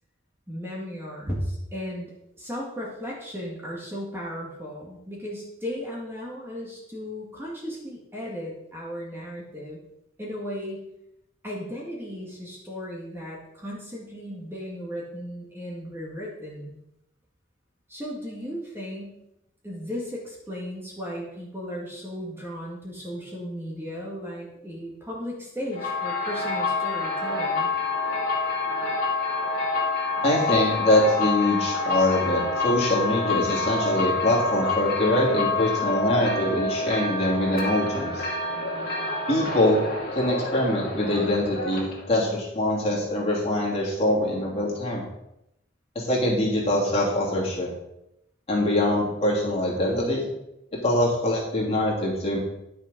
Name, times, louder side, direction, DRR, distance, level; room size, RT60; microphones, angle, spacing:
voice 1, 0.5-9.8 10.2-10.8 11.4-16.8 17.9-19.2 19.6-27.7, equal, 10° right, -4 dB, 2.0 m, -35 dB
sound 1, 25.7-42.1, left 3 dB, 50° left, 2.4 m, -27 dB
voice 2, 30.2-38.3 39.3-39.8 40.1-45.0 45.9-47.7 48.5-50.3 50.8-52.4, left 1 dB, 30° left, -4 dB, 2.8 m, -23 dB
10.5 x 6.5 x 5.3 m, 0.85 s
head